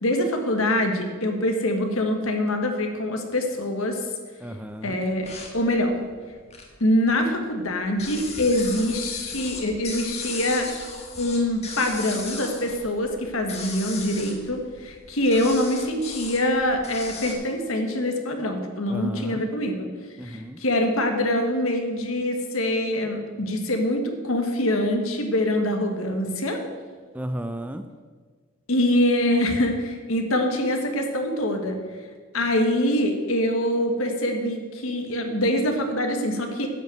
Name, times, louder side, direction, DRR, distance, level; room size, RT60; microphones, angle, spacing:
voice 1, 0.0-4.0 4.8-5.9 6.8-10.7 11.2-19.9 20.2-26.6 28.7-31.8 32.3-36.7, left 1 dB, 75° left, 5 dB, 1.5 m, -24 dB
voice 2, 4.4-5.0 18.9-19.4 20.2-20.6 27.1-27.9, right 1 dB, 5° right, 9 dB, 0.4 m, -33 dB
sound 1, 5.0-6.8 7.2-17.3, left 4 dB, 30° left, 1.6 m, -37 dB
10.5 x 5.6 x 7.6 m, 1.5 s
head